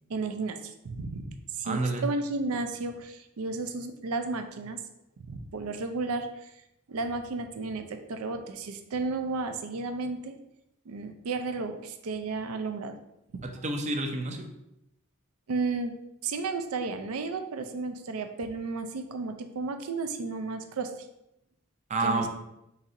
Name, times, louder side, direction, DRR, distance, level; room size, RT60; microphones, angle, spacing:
voice 1, 0.1-4.8 5.3-6.5 6.9-10.3 10.9-13.0 13.3-13.4 15.5-15.9 16.2-20.9 22.0-22.3, right 3 dB, 85° right, 7 dB, 0.5 m, -33 dB
voice 2, 1.6-2.1 13.4-14.5 21.9-22.3, right 2 dB, 35° right, 4 dB, 0.5 m, -29 dB
4.1 x 4.0 x 2.6 m, 0.86 s
head